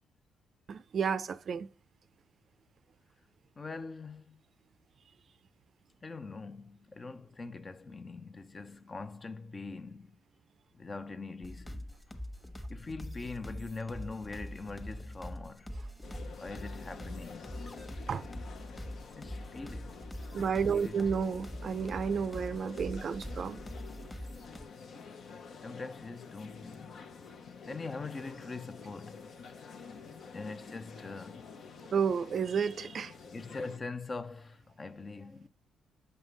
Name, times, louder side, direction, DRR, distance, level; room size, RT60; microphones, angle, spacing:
voice 1, 0.7-1.7 18.1-18.2 20.3-23.6 31.9-33.1, right 6 dB, 50° right, 0.5 m, -31 dB
voice 2, 3.6-4.4 6.0-10.2 10.7-12.2 12.7-15.7 16.4-17.8 19.2-20.0 20.7-21.1 25.6-27.1 27.6-29.3 30.3-31.5 33.3-35.5, left 3 dB, 30° left, 0.6 m, -43 dB
sound 1, 11.4-24.6, equal, 10° left, 1.2 m, -43 dB
sound 2, 16.0-33.8, left 5 dB, 60° left, 0.9 m, -49 dB
7.9 x 5.4 x 3.2 m
cardioid pair, 90°, 0 cm